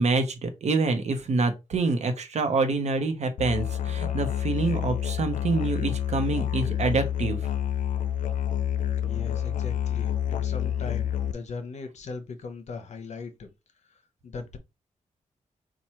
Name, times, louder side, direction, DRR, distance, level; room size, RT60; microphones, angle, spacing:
voice 1, 0.0-7.4, right 3 dB, 60° right, 0.8 m, -26 dB
Musical instrument, 3.4-11.3, left 9 dB, 85° left, 0.5 m, -28 dB
voice 2, 9.0-13.5 13.9-14.6, left 4 dB, 60° left, 0.8 m, -39 dB
4.5 x 2.3 x 4.4 m
wide cardioid pair, 150°, 13 cm